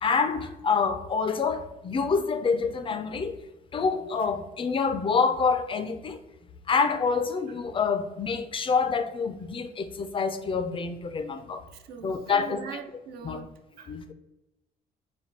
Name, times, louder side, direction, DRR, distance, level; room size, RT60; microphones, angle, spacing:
voice 1, 0.0-3.4 3.7-6.2 6.7-11.6 12.0-12.6 13.2-13.4 13.9-14.1, left 5 dB, 30° left, 0.4 m, -27 dB
voice 2, 11.7-13.5 13.8-14.1, right 7 dB, 70° right, 0.6 m, -42 dB
4.2 x 2.2 x 4.5 m
cardioid pair, 110°, 17 cm